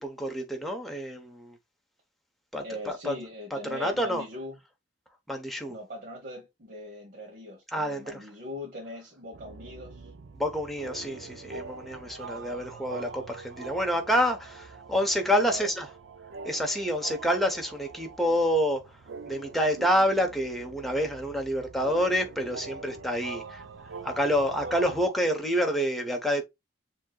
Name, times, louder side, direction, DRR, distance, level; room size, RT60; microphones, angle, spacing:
voice 1, 0.0-1.6 2.5-3.1 3.5-4.2 5.3-5.8 7.7-8.0 10.4-15.9 16.4-18.8 19.3-23.6 24.0-26.4, equal, ahead, 0.9 m, -28 dB
voice 2, 2.6-4.6 5.7-10.1 15.2-15.7, left 1 dB, 55° right, 1.1 m, -41 dB
sound 1, 9.3-25.1, right 4 dB, 80° right, 0.5 m, -44 dB
7.2 x 2.9 x 2.3 m
head